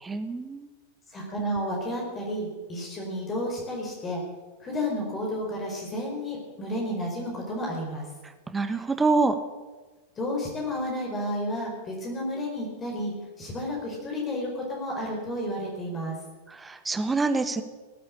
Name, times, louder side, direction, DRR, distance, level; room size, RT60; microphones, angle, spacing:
voice 1, 0.0-0.7 8.5-9.3 16.6-17.6, right 3 dB, 10° right, 9 dB, 1.4 m, -25 dB
voice 2, 1.1-4.2 4.6-8.0 10.2-16.2, left 1 dB, 20° left, -2 dB, 4.6 m, -31 dB
18.0 x 8.9 x 8.6 m, 1.3 s
figure-of-eight pair, 90°, 0 cm